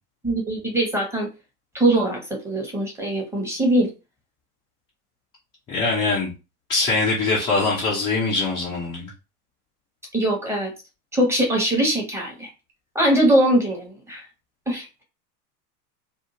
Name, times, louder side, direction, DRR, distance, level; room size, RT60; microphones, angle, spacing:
voice 1, 0.2-1.3 1.7-3.9 10.1-10.7 11.1-12.5 12.9-14.2 14.7-15.0, right 1 dB, 5° right, 0 dB, 0.9 m, -22 dB
voice 2, 5.7-6.3 6.7-9.1, left 3 dB, 10° left, -6 dB, 0.3 m, -22 dB
2.6 x 2.3 x 2.7 m, 0.29 s
figure-of-eight pair, 95°, 49 cm